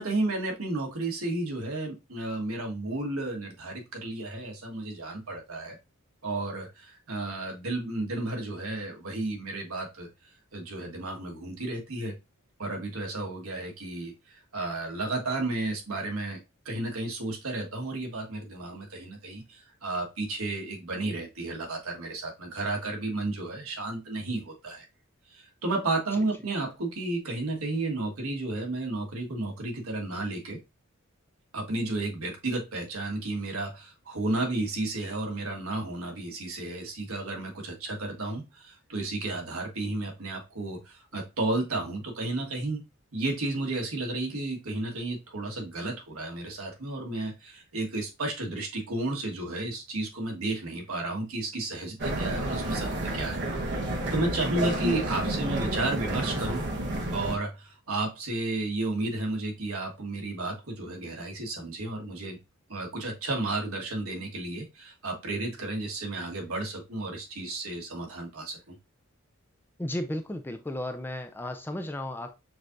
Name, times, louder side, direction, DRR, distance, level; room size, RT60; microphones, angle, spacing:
voice 1, 0.0-5.8 6.2-10.1 10.5-12.1 12.6-16.4 16.6-24.8 25.3-30.6 31.5-42.8 43.1-52.9 53.1-53.4 54.1-56.6 57.1-62.4 62.7-68.8, right 2 dB, 80° right, 1.4 m, -32 dB
sound 1, 52.0-57.4, right 1 dB, 55° right, 1.0 m, -30 dB
voice 2, 69.8-72.3, left 1 dB, 10° left, 0.4 m, -34 dB
6.2 x 2.8 x 2.5 m
head